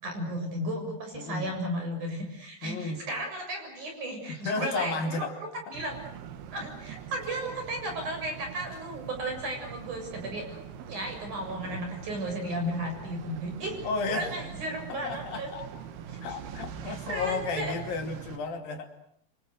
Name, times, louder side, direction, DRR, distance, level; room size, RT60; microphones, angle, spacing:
voice 1, 0.0-5.3 5.7-6.0 6.5-10.6 10.9-13.8 14.1-15.5 16.8-17.7, right 1 dB, 50° right, 3 dB, 8.7 m, -34 dB
voice 2, 1.1-1.6 2.6-3.0 4.3-5.4 13.8-14.3 14.9-15.6 16.2-18.9, left 4 dB, 70° left, 6 dB, 4.3 m, -33 dB
sound 1, 5.7-18.4, right 8 dB, 85° right, 3.7 m, -43 dB
28.0 x 27.5 x 6.7 m, 0.69 s
omnidirectional pair, 4.4 m